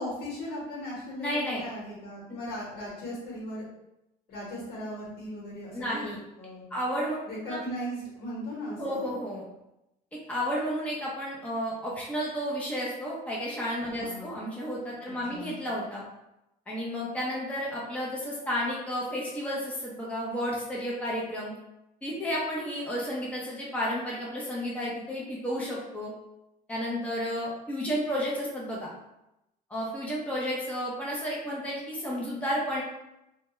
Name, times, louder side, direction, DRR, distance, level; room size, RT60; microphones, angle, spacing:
voice 1, 0.0-3.6 4.3-6.7 7.2-9.1 13.9-14.4 15.0-15.5, equal, 70° left, -4 dB, 1.1 m, -38 dB
voice 2, 1.2-1.6 5.7-6.2 6.7-7.2 7.5-7.6 8.8-9.4 10.3-16.0 16.7-21.5 22.0-26.1 26.7-29.0 29.7-32.8, equal, 10° left, -5 dB, 0.6 m, -32 dB
2.2 x 2.1 x 2.9 m, 0.89 s
cardioid pair, 110°, 17 cm